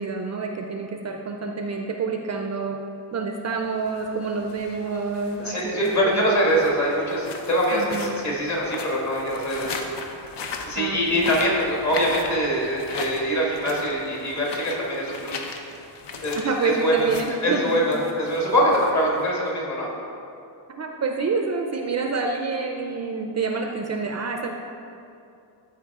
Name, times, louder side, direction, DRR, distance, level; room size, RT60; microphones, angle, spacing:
voice 1, 0.0-2.8 3.1-6.2 7.7-8.2 10.8-11.3 16.4-17.8 20.7-24.5, right 4 dB, 40° right, 3 dB, 0.4 m, -28 dB
sound 1, 3.8-19.5, left 4 dB, 70° left, 0.8 m, -38 dB
voice 2, 5.4-9.8 10.6-15.5 16.2-17.1 17.4-19.9, equal, 40° left, -3 dB, 1.7 m, -23 dB
13.0 x 4.6 x 3.6 m, 2.6 s
wide cardioid pair, 180°, 43 cm